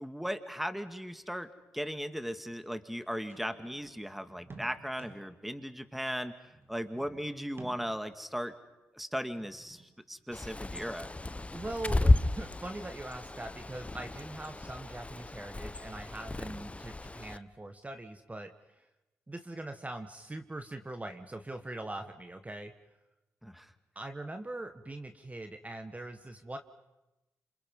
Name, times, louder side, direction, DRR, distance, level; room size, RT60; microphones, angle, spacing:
voice 1, 0.0-1.5 1.7-6.3 6.7-8.5 8.9-11.1 23.4-23.7, equal, ahead, 10 dB, 2.1 m, -37 dB
sound 1, 1.2-1.3 1.8-1.9 2.9-5.5 6.4-8.2 9.3-11.0 11.2-12.7, right 3 dB, 40° right, 3.1 m, -54 dB
Bird, 10.3-17.4, left 2 dB, 20° left, 0.9 m, -32 dB
voice 2, 11.5-18.9 19.3-22.7 23.9-26.6, right 2 dB, 25° right, 7 dB, 1.6 m, -42 dB
27.5 x 27.0 x 5.6 m, 1.0 s
supercardioid pair, 45°, 6 cm